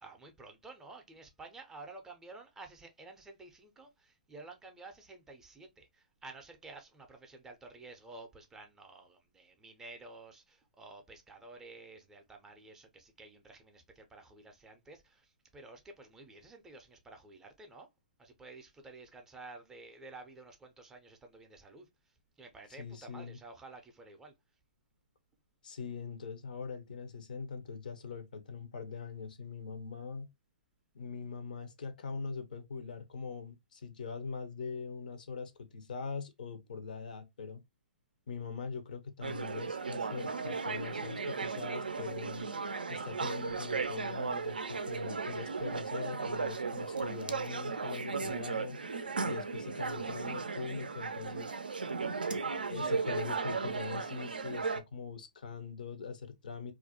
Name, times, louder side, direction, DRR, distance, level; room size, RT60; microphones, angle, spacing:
voice 1, 0.0-17.9 18.2-24.3, right 3 dB, 10° right, 0.4 m, -52 dB
voice 2, 22.8-23.4 25.6-30.3 30.9-37.6 38.3-42.5 42.9-48.8 49.2-51.5 52.7-56.7, left 5 dB, 70° left, 0.5 m, -42 dB
sound 1, 39.2-54.8, right 4 dB, 85° right, 0.3 m, -36 dB
2.4 x 2.1 x 2.6 m
figure-of-eight pair, 125°, 5 cm